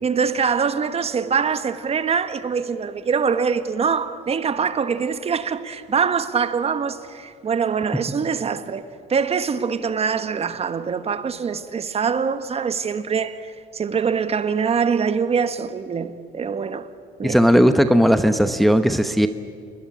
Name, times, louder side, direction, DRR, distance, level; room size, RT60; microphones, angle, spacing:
voice 1, 0.0-16.9 17.2-17.4, right 6 dB, 35° right, 1.2 m, -24 dB
voice 2, 17.2-19.3, equal, ahead, 1.0 m, -16 dB
28.5 x 21.5 x 8.6 m
cardioid pair, 110°, 17 cm